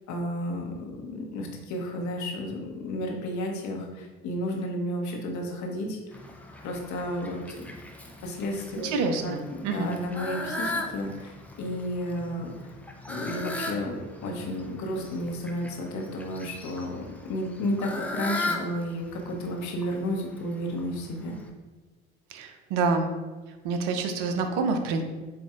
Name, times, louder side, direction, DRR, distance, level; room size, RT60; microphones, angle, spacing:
voice 1, 0.1-6.0 6.6-7.8 8.2-8.9 9.2-9.4 9.7-12.7 13.1-21.4, left 1 dB, 60° left, 1 dB, 1.0 m, -32 dB
Fowl, 6.1-21.5, left 2 dB, 5° left, 0.7 m, -38 dB
voice 2, 8.8-9.9 22.3-23.1 23.6-25.0, right 4 dB, 70° right, 6 dB, 0.7 m, -27 dB
7.4 x 2.6 x 2.5 m, 1.3 s
hypercardioid pair, 55°, 32 cm